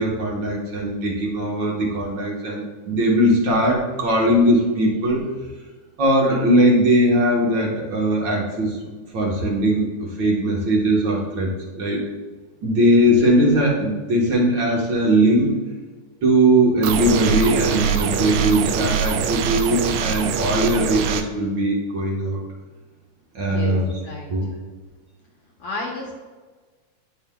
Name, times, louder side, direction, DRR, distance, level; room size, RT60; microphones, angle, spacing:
voice 1, 0.0-5.3 6.0-12.0 12.6-15.5 16.2-22.4 23.3-23.9 24.3-24.5, right 1 dB, 55° right, -2 dB, 1.3 m, -20 dB
sound 1, 16.8-21.2, right 7 dB, 80° right, 2.0 m, -23 dB
voice 2, 23.4-24.3 25.6-26.1, left 2 dB, 65° left, -2 dB, 1.5 m, -32 dB
9.7 x 5.5 x 2.3 m, 1.4 s
omnidirectional pair, 3.5 m